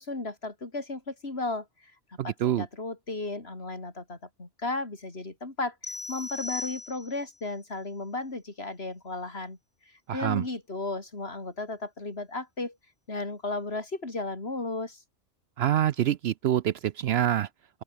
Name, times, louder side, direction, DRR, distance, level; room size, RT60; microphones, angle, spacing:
voice 1, 0.0-1.9 2.2-9.6 9.9-12.8 13.1-15.0, left 2 dB, 55° left, 3.8 m, -35 dB
sound 1, 5.8-7.4, left 3 dB, 35° left, 2.3 m, -37 dB
voice 2, 10.1-10.4 15.6-17.5, right 11 dB, 65° right, 0.7 m, -25 dB
open air
omnidirectional pair, 1.3 m